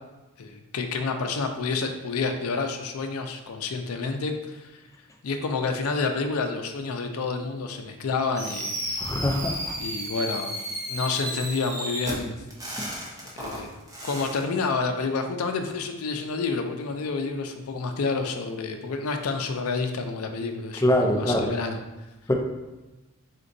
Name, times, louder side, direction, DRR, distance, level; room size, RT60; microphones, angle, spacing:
voice 1, 0.4-4.7 5.2-9.0 9.8-10.6 10.9-12.4 13.4-13.7 14.0-21.8, left 4 dB, 80° left, 6 dB, 0.4 m, -29 dB
Fireworks, 8.4-14.4, equal, 15° right, 0.8 m, -33 dB
voice 2, 9.0-9.7 12.8-12.9 20.8-21.5 22.3-22.4, left 1 dB, 15° left, 1 dB, 0.4 m, -23 dB
4.3 x 3.9 x 2.6 m, 1.1 s
head